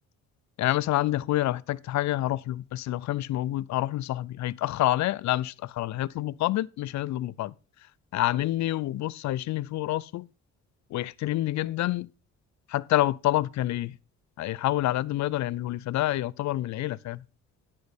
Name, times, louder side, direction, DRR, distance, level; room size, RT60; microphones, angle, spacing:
voice 1, 0.6-7.5 8.1-10.3 10.9-12.1 12.7-14.0 14.4-17.2, left 15 dB, 65° left, 0.5 m, -28 dB
10.0 x 5.4 x 5.1 m
cardioid pair, 90°, 30 cm